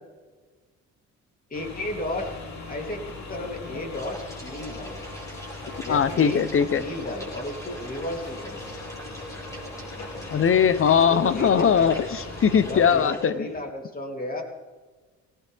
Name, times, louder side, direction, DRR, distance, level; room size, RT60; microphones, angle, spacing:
sound 1, 1.5-13.0, left 2 dB, 65° left, 3.3 m, -39 dB
voice 1, 1.5-2.3 2.7-5.0 5.8-6.4 6.7-8.6 11.1-12.2 12.7-14.4, left 1 dB, 30° left, 2 dB, 3.4 m, -33 dB
sound 2, 3.9-13.3, right 1 dB, 10° left, 5.7 m, -43 dB
voice 2, 5.9-6.8 10.3-13.5, left 7 dB, 45° left, 14 dB, 1.0 m, -20 dB
18.0 x 17.0 x 3.6 m, 1.4 s
cardioid pair, 90°, 30 cm